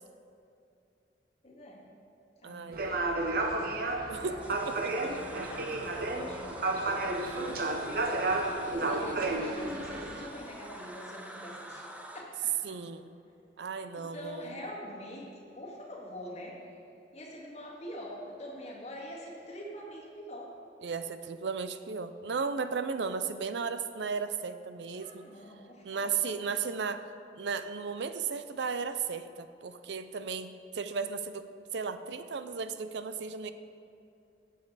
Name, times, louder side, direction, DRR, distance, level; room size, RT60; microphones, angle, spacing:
voice 1, 1.4-1.9 2.4-3.6 4.1-11.9 12.1-12.6 13.9-16.6 17.1-20.6 24.9-26.5, equal, 35° left, -4 dB, 2.0 m, -45 dB
voice 2, 2.4-3.0 4.1-5.1 8.8-9.4 12.6-13.1 13.6-14.6 20.8-25.3 25.8-27.1 27.4-33.5, right 5 dB, 75° right, 11 dB, 0.5 m, -35 dB
sound 1, 2.7-10.3, right 2 dB, 55° right, 0.9 m, -32 dB
sound 2, 4.4-12.2, right 1 dB, 10° right, 0.6 m, -46 dB
15.0 x 7.6 x 4.0 m, 2.6 s
head